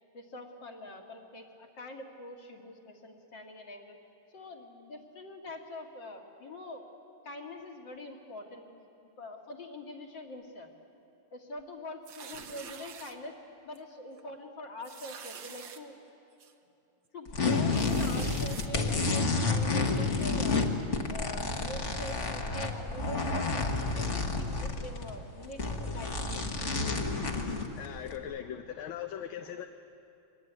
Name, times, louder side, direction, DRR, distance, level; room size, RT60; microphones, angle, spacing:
voice 1, 0.1-4.0 4.3-6.8 7.2-8.7 9.2-10.7 11.3-13.4 13.6-16.0 17.1-20.7 21.1-23.7 23.9-26.7, left 1 dB, 55° left, 2 dB, 2.8 m, -44 dB
sound 1, 12.0-13.1 13.8-13.9 14.2-14.3 14.8-15.8 16.4-16.5 17.7-18.7, right 7 dB, 65° right, 1.9 m, -46 dB
sound 2, 17.3-25.1 25.4-28.1, left 3 dB, 35° left, 1.7 m, -30 dB
voice 2, 27.8-29.7, left 9 dB, 70° left, 6 dB, 1.6 m, -39 dB
24.5 x 20.5 x 9.5 m, 2.8 s
omnidirectional pair, 2.4 m